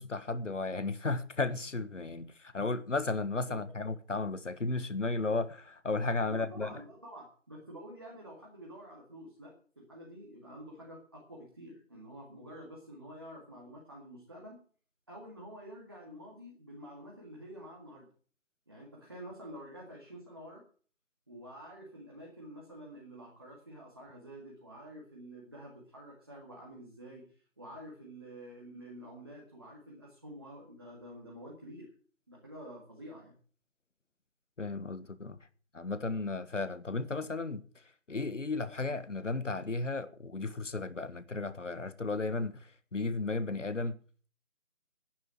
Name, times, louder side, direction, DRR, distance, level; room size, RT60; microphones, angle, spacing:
voice 1, 0.0-6.7 34.6-35.4 35.7-37.6 38.1-42.5 42.9-44.0, left 3 dB, 65° left, 1.6 m, -34 dB
voice 2, 6.2-14.6 15.1-18.1 18.7-20.6 21.3-31.9 32.3-33.3, equal, 20° right, 2.1 m, -49 dB
10.5 x 9.4 x 9.0 m
figure-of-eight pair, 175°, 39 cm